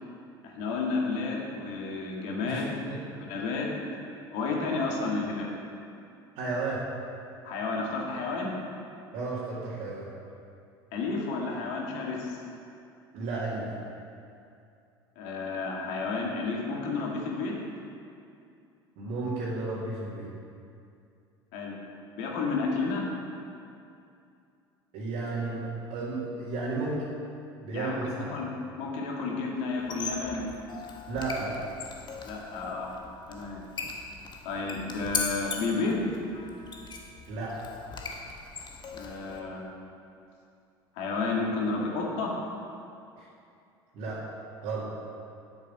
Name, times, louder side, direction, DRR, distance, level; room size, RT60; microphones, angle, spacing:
voice 1, 0.4-2.8 3.1-3.7 4.3-5.5 7.4-8.5 10.9-12.4 15.2-17.6 21.5-21.8 22.2-23.1 27.7-28.5 28.8-30.5 32.2-32.9 33.3-33.6 34.4-36.1 38.9-39.6 41.0-42.3, left 3 dB, 65° left, -2 dB, 2.2 m, -31 dB
voice 2, 2.4-3.0 6.4-6.8 9.1-10.1 13.1-13.7 19.0-20.3 24.9-27.0 27.6-28.4 31.1-31.6 37.3-37.6 43.2-43.3 43.9-44.2 44.6-44.9, right 3 dB, 60° right, -8 dB, 2.3 m, -33 dB
Squeak, 29.8-39.4, left 4 dB, 35° left, 1.3 m, -39 dB
8.8 x 8.3 x 5.7 m, 2.5 s
hypercardioid pair, 70°, 13 cm